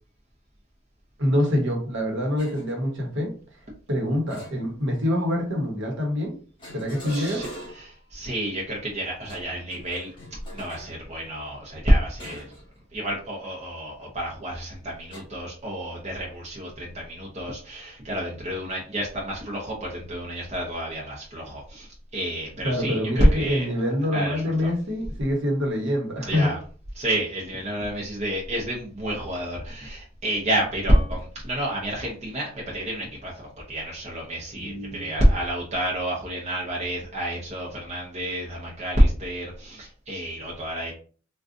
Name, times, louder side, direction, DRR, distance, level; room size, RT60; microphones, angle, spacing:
voice 1, 1.2-3.3 3.9-6.3 6.7-7.4 22.6-26.5 34.5-35.1, left 1 dB, 60° right, 1 dB, 1.0 m, -25 dB
sound 1, 2.4-2.7 4.3-5.0 6.6-8.0 9.2-10.9 12.2-12.7 13.0-13.3 15.1-15.2, equal, 25° left, 1.3 m, -42 dB
voice 2, 7.1-7.5 7.7-10.1 10.5-12.6 12.9-23.7 24.1-24.7 26.2-26.6 27.0-40.9, equal, 30° right, -3 dB, 0.7 m, -28 dB
3.7 x 2.3 x 2.5 m, 0.41 s
head